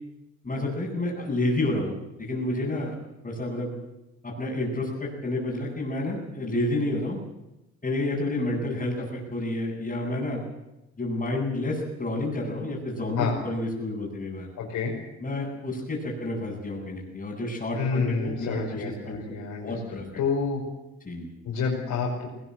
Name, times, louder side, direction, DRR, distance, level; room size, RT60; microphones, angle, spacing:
voice 1, 0.4-3.0 3.2-3.7 4.2-7.2 7.8-10.4 11.0-14.5 15.2-20.0 21.0-21.3, left 1 dB, 25° left, -7 dB, 7.7 m, -30 dB
voice 2, 14.6-14.9 17.8-20.6 21.4-22.3, left 5 dB, 80° left, -3 dB, 5.6 m, -28 dB
20.0 x 20.0 x 7.9 m, 0.97 s
cardioid pair, 90°, 30 cm